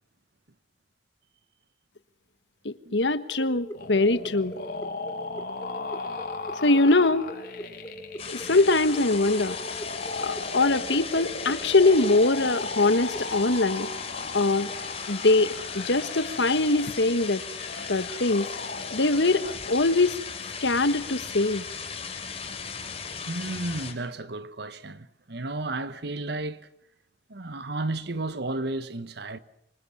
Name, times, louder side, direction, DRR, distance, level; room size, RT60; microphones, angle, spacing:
voice 1, 2.6-4.5 6.6-7.3 8.3-9.6 10.2-13.9 14.3-14.7 15.1-17.4 17.9-18.5 18.9-20.1 20.6-21.6, left 2 dB, 75° left, 1.4 m, -22 dB
sound 1, 3.4-13.2, equal, 15° left, 2.4 m, -41 dB
sound 2, 3.7-19.7, left 3 dB, 60° left, 4.0 m, -37 dB
sound 3, 8.2-23.9, left 6 dB, 35° left, 3.8 m, -37 dB
voice 2, 23.3-26.6 27.3-29.4, right 2 dB, 65° right, 1.3 m, -33 dB
26.0 x 25.5 x 7.3 m
head